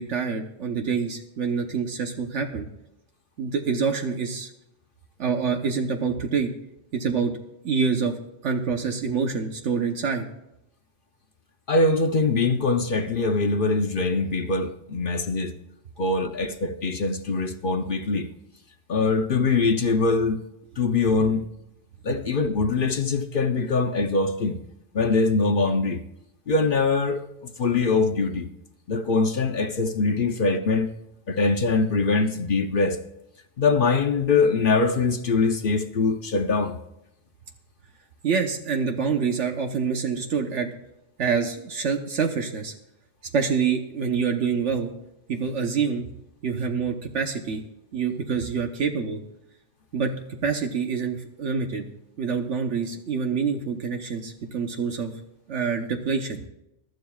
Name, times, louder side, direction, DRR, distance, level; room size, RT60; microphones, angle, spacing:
voice 1, 0.0-2.7 3.4-4.5 5.2-6.5 6.9-7.3 7.6-10.2 38.2-40.7 41.2-42.7 43.3-44.9 45.3-46.1 46.4-47.6 47.9-49.2 49.9-50.1 50.4-51.9 52.2-55.1 55.5-56.4, right 5 dB, 75° right, 1.3 m, -26 dB
voice 2, 11.7-15.5 16.0-18.3 18.9-20.4 20.8-21.5 22.0-24.6 24.9-26.0 26.5-27.3 27.6-28.5 28.9-30.9 31.3-33.0 33.6-36.7, left 3 dB, 50° left, 0.8 m, -23 dB
22.5 x 12.0 x 2.3 m
omnidirectional pair, 1.2 m